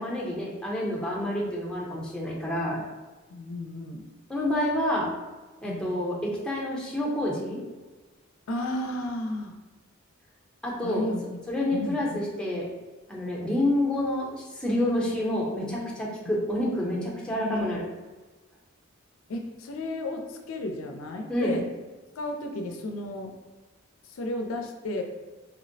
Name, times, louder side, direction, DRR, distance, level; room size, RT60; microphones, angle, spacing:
voice 1, 0.0-2.8 4.3-5.1 5.6-7.6 10.6-11.0 11.5-12.7 13.1-17.8 21.3-21.6, left 1 dB, 5° left, -4 dB, 0.6 m, -28 dB
voice 2, 3.3-4.0 5.6-5.9 8.5-9.5 10.8-11.4 11.7-12.3 16.4-16.5 17.3-17.8 19.3-21.6 22.2-23.3 24.1-25.0, left 1 dB, 75° left, 4 dB, 0.4 m, -33 dB
4.3 x 2.0 x 2.6 m, 1.3 s
head